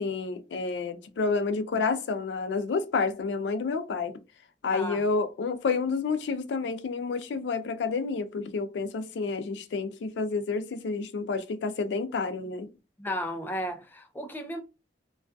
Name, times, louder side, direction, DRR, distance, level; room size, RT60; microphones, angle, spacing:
voice 1, 0.0-4.1 4.6-12.7, left 4 dB, 85° left, 0.4 m, -29 dB
voice 2, 4.7-5.0 13.0-14.6, equal, 10° left, 0.3 m, -34 dB
2.3 x 2.2 x 2.5 m
head